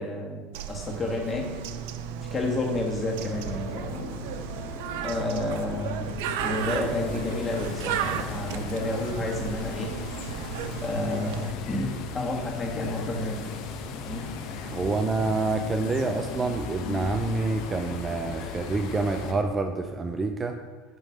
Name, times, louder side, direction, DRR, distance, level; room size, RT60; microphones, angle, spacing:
voice 1, 0.0-1.5 2.3-4.1 5.0-10.0 10.8-13.4 14.0-14.3, left 2 dB, 20° left, -1 dB, 1.7 m, -30 dB
Bird, 0.5-11.5, right 8 dB, 75° right, 0.5 m, -34 dB
sound 1, 3.0-19.4, left 3 dB, 75° left, 1.4 m, -40 dB
sound 2, 6.6-19.3, left 5 dB, 60° left, 0.9 m, -39 dB
voice 2, 14.6-20.6, right 3 dB, 20° right, 6 dB, 0.5 m, -27 dB
9.3 x 3.2 x 6.4 m, 1.3 s
supercardioid pair, 125°, 0 cm